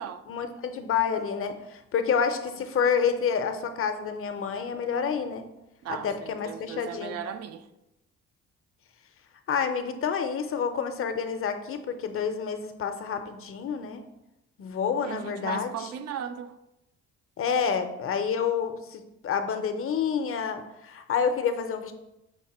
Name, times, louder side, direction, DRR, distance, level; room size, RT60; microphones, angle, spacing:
voice 1, 0.3-5.4 5.9-7.2 9.5-14.0 14.6-15.7 17.4-21.9, left 6 dB, 45° left, 8 dB, 0.5 m, -28 dB
voice 2, 5.8-7.7 15.0-16.5, right 8 dB, 55° right, 11 dB, 0.5 m, -37 dB
5.9 x 2.1 x 4.1 m, 0.89 s
cardioid pair, 90°, 30 cm